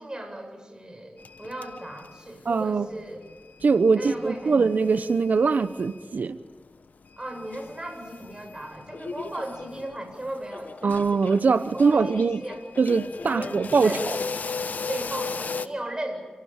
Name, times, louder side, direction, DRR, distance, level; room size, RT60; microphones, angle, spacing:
voice 1, 0.0-3.3 3.9-4.6 7.2-11.1 11.7-12.6 13.3-14.1 14.9-16.2, right 1 dB, 25° right, 4 dB, 7.9 m, -36 dB
sound 1, 1.2-2.6 2.9-6.1 6.5-6.6 7.1-15.7, left 4 dB, 70° left, 1.1 m, -37 dB
voice 2, 2.5-2.9 3.6-6.4 10.8-12.4 12.8-14.2, right 4 dB, 70° right, 13 dB, 1.0 m, -22 dB
28.0 x 18.0 x 8.9 m, 1.4 s
cardioid pair, 40°, 3 cm